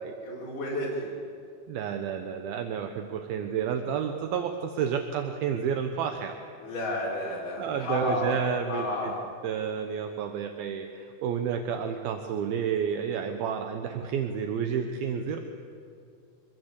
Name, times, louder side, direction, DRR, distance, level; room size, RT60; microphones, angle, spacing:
voice 1, 0.2-1.1 6.6-8.3 8.7-9.2, left 1 dB, 55° left, -6 dB, 6.3 m, -31 dB
voice 2, 1.7-6.4 7.6-9.2 9.4-15.4, right 7 dB, 75° right, 5 dB, 2.9 m, -30 dB
26.0 x 21.5 x 8.3 m, 2.5 s
omnidirectional pair, 4.5 m